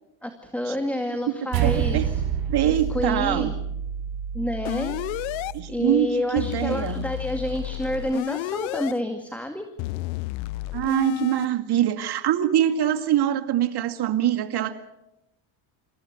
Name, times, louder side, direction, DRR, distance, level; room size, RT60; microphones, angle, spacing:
voice 1, 0.2-2.2 2.7-3.5 4.3-5.0 5.7-9.7, left 1 dB, 5° left, 6 dB, 2.1 m, -29 dB
voice 2, 1.4-2.0 2.5-3.5 5.5-7.0 10.7-14.7, right 11 dB, 55° right, 6 dB, 2.3 m, -24 dB
sound 1, 1.5-6.1, right 9 dB, 85° right, 4.7 m, -28 dB
sound 2, 4.6-5.5 6.4-8.9 9.8-11.5, left 19 dB, 80° left, 0.7 m, -31 dB
27.0 x 14.5 x 8.3 m, 0.92 s
supercardioid pair, 95°, 46 cm